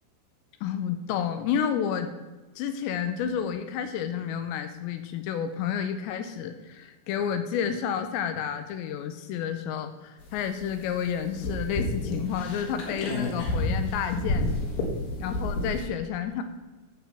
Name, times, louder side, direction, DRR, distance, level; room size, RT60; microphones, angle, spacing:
voice 1, 0.6-2.1 2.6-14.4 15.2-16.4, left 8 dB, 80° left, 9 dB, 2.7 m, -30 dB
sound 1, 10.2-15.8, left 1 dB, 60° left, 3.4 m, -30 dB
13.5 x 5.7 x 5.9 m, 1.2 s
omnidirectional pair, 5.5 m